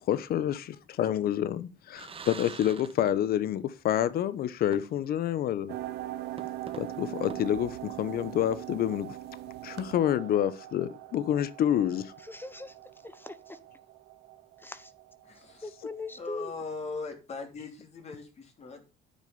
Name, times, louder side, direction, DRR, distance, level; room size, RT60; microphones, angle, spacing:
voice 1, 0.1-5.7 6.8-9.2 9.6-12.1, left 11 dB, 65° left, 1.0 m, -28 dB
sound 1, 1.9-3.5 3.8-3.9 4.7-5.2 5.6-5.7 6.4-8.4, right 6 dB, 35° right, 1.7 m, -46 dB
sound 2, 5.7-16.4, right 14 dB, 80° right, 0.9 m, -42 dB
voice 2, 12.2-12.7 13.0-13.6 14.6-14.9 15.6-16.5, left 2 dB, 10° left, 0.9 m, -40 dB
voice 3, 15.2-15.7 16.1-18.9, left 3 dB, 40° left, 3.5 m, -40 dB
9.9 x 6.3 x 7.0 m
cardioid pair, 110°, 17 cm